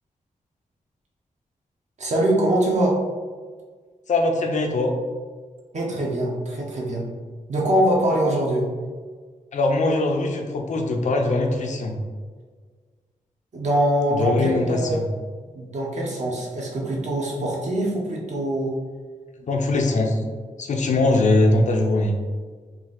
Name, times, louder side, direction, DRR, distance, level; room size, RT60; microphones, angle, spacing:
voice 1, 2.0-2.9 5.7-7.0 7.5-8.7 13.5-15.0 15.5-18.8, right 1 dB, 55° right, -2 dB, 1.1 m, -23 dB
voice 2, 4.1-4.9 9.5-12.0 14.1-15.1 19.4-20.2 20.6-22.2, left 2 dB, 60° left, 3 dB, 0.5 m, -21 dB
4.6 x 2.6 x 3.7 m, 1.5 s
wide cardioid pair, 170°, 14 cm